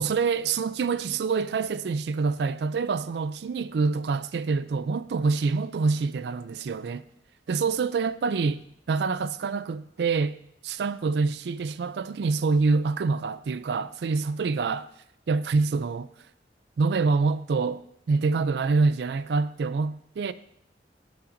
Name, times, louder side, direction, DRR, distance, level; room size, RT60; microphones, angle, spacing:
voice 1, 0.0-7.0 7.5-8.6 8.9-10.4 10.6-14.9 15.3-16.1 16.8-20.3, right 4 dB, 70° right, 0.4 m, -26 dB
14.5 x 5.8 x 2.6 m
head